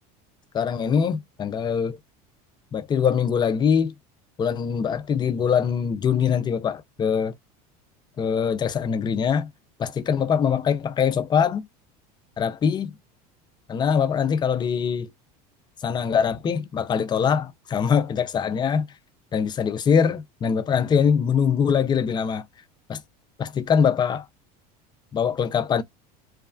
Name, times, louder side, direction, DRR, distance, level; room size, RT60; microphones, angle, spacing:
voice 1, 0.5-2.0 2.7-3.9 4.4-7.3 8.2-9.5 9.8-11.7 12.4-13.0 13.7-15.1 15.8-18.9 19.3-22.5 22.9-23.0 23.4-24.3 25.1-25.8, left 7 dB, 25° left, 0.4 m, -23 dB
3.1 x 2.2 x 2.2 m
supercardioid pair, 120°, 19 cm